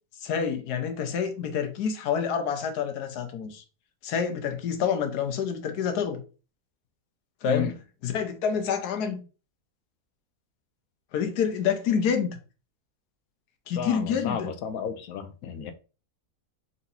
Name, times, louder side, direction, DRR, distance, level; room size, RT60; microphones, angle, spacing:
voice 1, 0.2-3.6 4.0-6.2 7.4-7.7 8.0-9.2 11.1-12.4 13.7-14.5, left 7 dB, 85° left, 1.3 m, -27 dB
voice 2, 13.8-15.7, left 8 dB, 70° left, 1.1 m, -32 dB
4.1 x 3.8 x 2.7 m
omnidirectional pair, 1.6 m